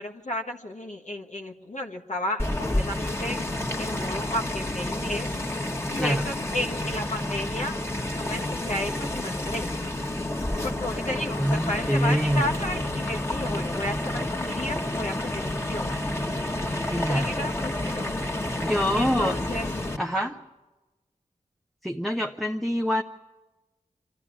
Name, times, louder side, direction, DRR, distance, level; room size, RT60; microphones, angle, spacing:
voice 1, 0.0-3.4 3.8-5.3 5.9-7.8 8.1-9.7 10.6-15.9 17.1-18.1 18.9-19.7 20.1-20.3, left 1 dB, 60° left, 2 dB, 1.4 m, -33 dB
sound 1, 2.4-20.0, left 1 dB, 20° left, 1.8 m, -30 dB
voice 2, 11.4-12.5 16.9-17.3 18.6-19.4 20.0-20.3 21.8-23.0, equal, ahead, 2 dB, 0.8 m, -25 dB
25.0 x 14.0 x 9.9 m, 1.2 s
wide cardioid pair, 65°, 14 cm